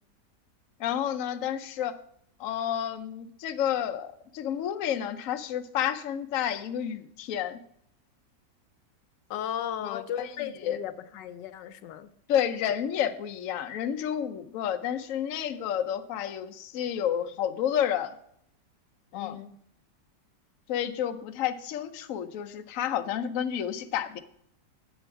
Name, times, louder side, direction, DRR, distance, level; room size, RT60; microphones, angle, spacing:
voice 1, 0.8-2.0 2.4-7.6 9.8-10.8 12.3-18.2 19.1-19.4 20.7-24.2, left 9 dB, 60° left, 8 dB, 1.0 m, -30 dB
voice 2, 9.3-12.1 19.1-19.6, left 10 dB, 90° left, 12 dB, 1.4 m, -36 dB
10.0 x 8.0 x 4.6 m, 0.68 s
omnidirectional pair, 1.9 m